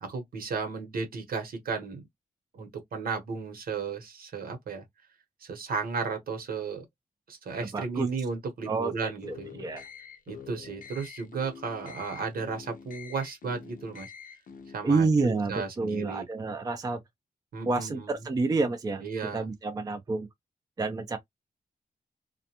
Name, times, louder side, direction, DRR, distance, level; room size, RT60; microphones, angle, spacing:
voice 1, 0.0-2.0 2.5-4.8 5.4-6.8 7.3-9.6 10.3-14.1 14.7-16.3 17.5-18.2 19.0-19.5, right 5 dB, 80° right, 1.0 m, -34 dB
voice 2, 7.6-8.1 8.7-9.9 14.8-17.0 17.6-19.0 19.3-20.3 20.8-21.2, right 3 dB, 25° right, 0.4 m, -29 dB
sound 1, 9.2-14.8, left 6 dB, 65° left, 0.5 m, -46 dB
2.3 x 2.1 x 2.8 m
wide cardioid pair, 135°, 15 cm